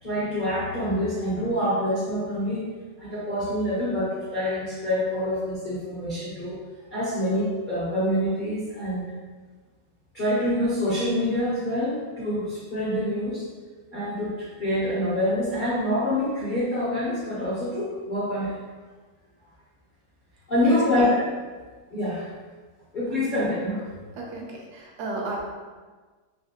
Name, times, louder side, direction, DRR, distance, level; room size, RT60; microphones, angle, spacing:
voice 1, 0.0-2.6 3.0-6.6 6.9-9.1 10.1-13.4 13.9-18.5 20.5-21.3 21.9-22.3 22.9-23.8, left 1 dB, 50° left, -10 dB, 0.6 m, -26 dB
voice 2, 20.6-21.1 23.1-23.3 24.2-25.4, right 2 dB, 75° right, -2 dB, 1.1 m, -33 dB
3.2 x 2.8 x 2.8 m, 1.4 s
omnidirectional pair, 1.9 m